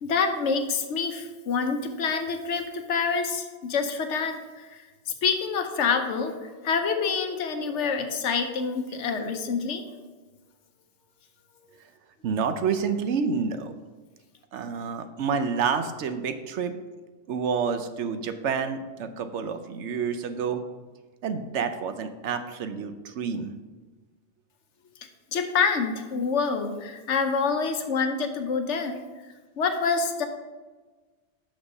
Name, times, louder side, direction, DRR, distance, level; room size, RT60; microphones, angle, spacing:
voice 1, 0.0-10.0 25.3-29.0 29.6-30.3, left 5 dB, 80° left, 6 dB, 1.1 m, -27 dB
voice 2, 12.2-13.7 14.5-16.7 17.3-20.6 21.2-23.5, right 6 dB, 75° right, 9 dB, 1.0 m, -28 dB
6.3 x 6.1 x 5.3 m, 1.3 s
omnidirectional pair, 1.2 m